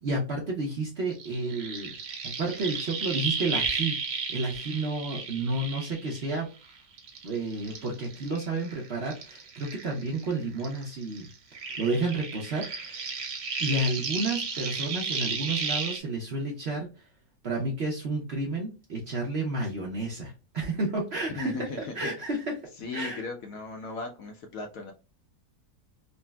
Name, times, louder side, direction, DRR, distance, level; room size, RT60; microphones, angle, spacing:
voice 1, 0.0-1.9 2.2-4.0 4.3-6.5 7.2-11.3 11.8-13.1 13.6-16.9 17.4-22.6 22.9-23.2, right 2 dB, 55° right, -2 dB, 0.7 m, -31 dB
sound 1, 1.1-6.6 7.0-10.3 10.6-16.0, right 5 dB, 85° right, 1.5 m, -33 dB
voice 2, 21.4-22.1 22.8-24.9, left 3 dB, 70° left, 3 dB, 0.9 m, -37 dB
4.1 x 2.1 x 2.2 m, 0.32 s
omnidirectional pair, 1.8 m